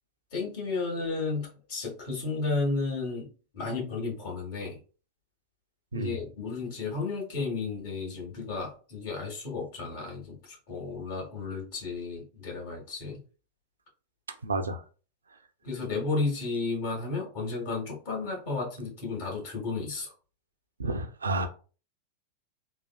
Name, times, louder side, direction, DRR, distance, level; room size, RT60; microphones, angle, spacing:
voice 1, 0.3-3.3 3.5-4.8 5.9-13.2 15.6-20.1, left 3 dB, 50° left, 1.5 m, -33 dB
voice 2, 14.4-14.8 20.8-21.5, right 2 dB, 75° right, 0.4 m, -30 dB
3.3 x 2.3 x 2.3 m
figure-of-eight pair, 90°, 0 cm